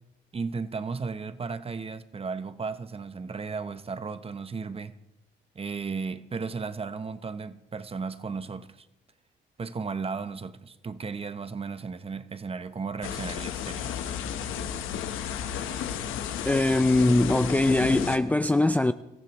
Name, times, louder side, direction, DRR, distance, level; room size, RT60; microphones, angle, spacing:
voice 1, 0.3-4.9 5.5-8.9 9.6-14.0, right 5 dB, 30° right, 0.8 m, -35 dB
sound 1, 13.0-18.2, left 9 dB, 85° left, 1.0 m, -33 dB
voice 2, 16.5-18.9, left 2 dB, 10° left, 0.4 m, -22 dB
25.0 x 15.0 x 3.0 m
cardioid pair, 90°, 20 cm